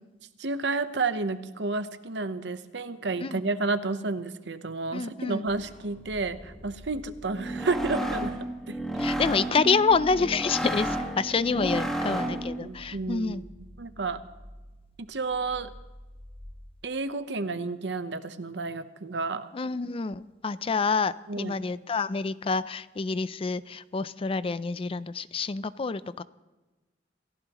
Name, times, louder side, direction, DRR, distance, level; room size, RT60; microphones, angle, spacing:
voice 1, 0.4-8.3 8.7-8.8 11.6-11.7 12.6-13.5 13.8-14.2 15.0-15.7 16.8-19.5 21.3-21.6, right 3 dB, 75° right, 11 dB, 0.9 m, -31 dB
voice 2, 4.9-5.4 9.0-13.4 19.5-26.2, left 4 dB, 30° left, 16 dB, 0.4 m, -28 dB
sound 1, 5.5-16.9, equal, 50° left, 7.1 m, -48 dB
sound 2, 7.3-12.6, right 1 dB, 5° left, 1.6 m, -31 dB
28.0 x 15.5 x 3.0 m, 1.2 s
head